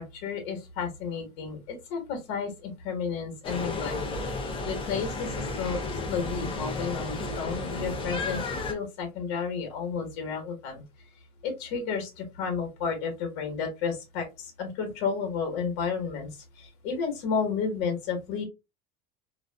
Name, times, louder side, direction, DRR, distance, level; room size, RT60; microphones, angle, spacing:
voice 1, 0.0-4.0 4.6-10.8 11.4-16.3 16.6-18.4, left 5 dB, 65° left, 5 dB, 1.1 m, -32 dB
sound 1, 3.4-8.7, left 2 dB, 25° left, 0.6 m, -33 dB
2.5 x 2.4 x 2.2 m, 0.25 s
supercardioid pair, 130°, 20 cm